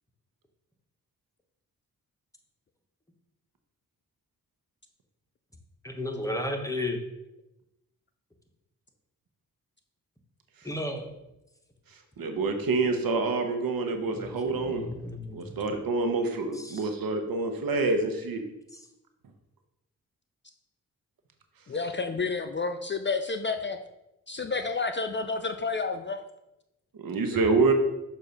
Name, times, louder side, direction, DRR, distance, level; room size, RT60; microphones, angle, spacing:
voice 1, 5.8-7.0 10.6-11.1 14.1-15.5 16.5-16.8 27.3-27.4, left 1 dB, 10° left, 3 dB, 1.1 m, -34 dB
voice 2, 12.2-14.8 15.3-18.4 27.0-27.7, right 3 dB, 70° right, 5 dB, 1.0 m, -27 dB
voice 3, 21.7-23.8 24.3-26.2, left 4 dB, 30° left, 7 dB, 0.4 m, -30 dB
6.8 x 2.7 x 5.4 m, 0.91 s
cardioid pair, 50°, 37 cm